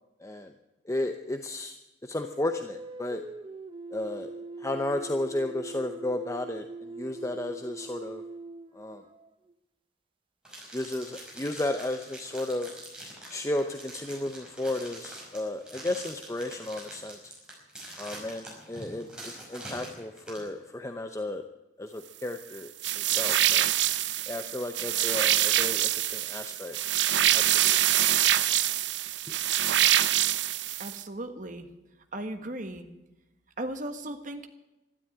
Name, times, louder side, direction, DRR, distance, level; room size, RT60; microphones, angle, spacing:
voice 1, 0.2-0.5 0.8-3.2 3.9-4.3 4.6-8.2 8.7-9.0 10.7-12.7 13.3-17.3 18.0-21.4 21.8-23.7 24.3-26.8 27.1-27.8 29.3-29.4, left 1 dB, 15° left, 6 dB, 0.7 m, -33 dB
sound 1, 2.2-9.5, right 2 dB, 30° right, 0.8 m, -42 dB
sound 2, 10.4-20.5, right 1 dB, 5° right, 5.4 m, -44 dB
sound 3, 22.8-31.0, right 12 dB, 75° right, 0.7 m, -25 dB
voice 2, 30.8-31.7 32.1-32.9 33.6-34.5, right 1 dB, 45° right, 7 dB, 1.5 m, -36 dB
13.0 x 12.5 x 8.9 m, 0.99 s
head